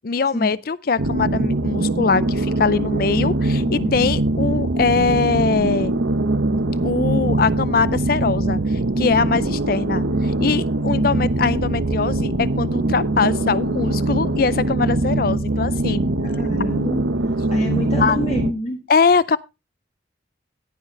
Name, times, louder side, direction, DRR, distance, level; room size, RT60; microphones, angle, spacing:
voice 1, 0.0-6.0 6.8-8.6 9.0-16.2 18.0-18.2 18.9-19.4, left 5 dB, 50° left, 0.4 m, -22 dB
sound 1, 1.0-18.5, right 2 dB, 80° right, 0.9 m, -22 dB
voice 2, 3.6-4.2 16.2-17.0 17.5-18.8, equal, 35° left, 1.5 m, -27 dB
17.5 x 6.6 x 3.1 m
head